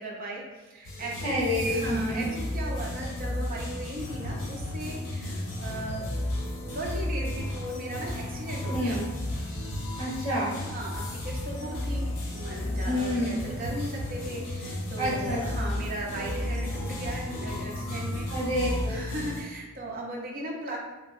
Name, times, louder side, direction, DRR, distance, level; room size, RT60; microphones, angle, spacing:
voice 1, 0.0-1.4 1.6-6.1 6.5-9.0 10.6-18.3 18.8-20.8, right 1 dB, 40° right, -2 dB, 0.5 m, -37 dB
sound 1, 0.8-19.4, left 1 dB, 85° left, 0.6 m, -33 dB
voice 2, 1.2-2.3 8.7-9.0 10.0-10.5 12.8-13.3 15.0-15.4 18.3-18.9, equal, 20° left, -13 dB, 1.3 m, -28 dB
2.9 x 2.6 x 2.4 m, 1.1 s
head